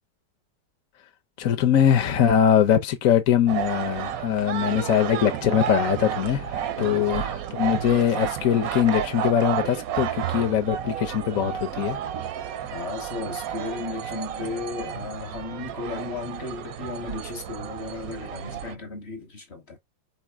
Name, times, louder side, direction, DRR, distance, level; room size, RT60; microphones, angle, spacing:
voice 1, 1.4-12.0, left 9 dB, 60° left, 0.9 m, -22 dB
sound 1, 3.5-18.7, right 9 dB, 70° right, 0.9 m, -31 dB
voice 2, 6.7-7.1 12.7-19.8, left 3 dB, 40° left, 1.1 m, -35 dB
4.9 x 3.0 x 3.4 m
omnidirectional pair, 2.0 m